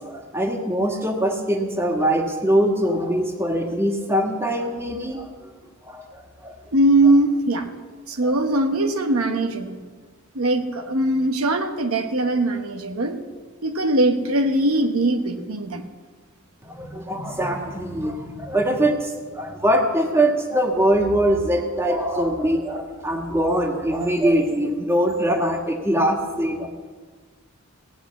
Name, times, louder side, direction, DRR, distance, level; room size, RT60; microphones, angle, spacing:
voice 1, 0.0-5.3 5.9-6.6 8.2-8.3 16.6-26.7, right 1 dB, 10° right, 2 dB, 1.6 m, -22 dB
voice 2, 6.7-7.7 8.1-9.8 10.3-13.2 13.6-15.8, right 2 dB, 80° right, 5 dB, 1.1 m, -21 dB
17.5 x 7.8 x 8.3 m, 1.5 s
head